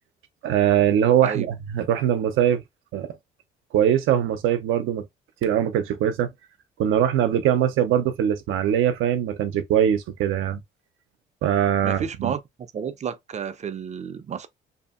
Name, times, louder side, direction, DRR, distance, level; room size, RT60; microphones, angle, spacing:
voice 1, 0.4-2.6 2.9-3.1 3.7-5.1 5.4-6.3 6.8-10.6 11.4-12.3, right 10 dB, 85° right, 0.6 m, -22 dB
voice 2, 11.8-12.4 12.7-14.5, right 7 dB, 35° right, 0.4 m, -30 dB
2.6 x 2.6 x 2.4 m
cardioid pair, 90°, 20 cm